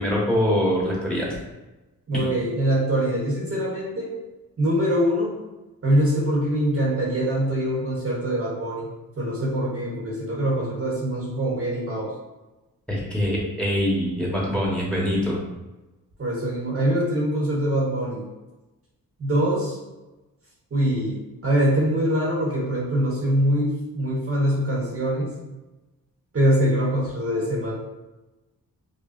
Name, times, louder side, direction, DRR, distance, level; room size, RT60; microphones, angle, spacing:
voice 1, 0.0-1.4 2.1-2.2 12.9-15.4, equal, 5° left, -4 dB, 1.1 m, -24 dB
voice 2, 2.1-4.1 4.6-5.4 5.8-8.9 9.2-12.1 16.2-18.3 19.2-19.8 20.7-21.2 21.4-25.3 26.3-27.7, equal, 40° right, -3 dB, 1.0 m, -23 dB
5.0 x 2.2 x 2.5 m, 1.1 s
cardioid pair, 85°, 36 cm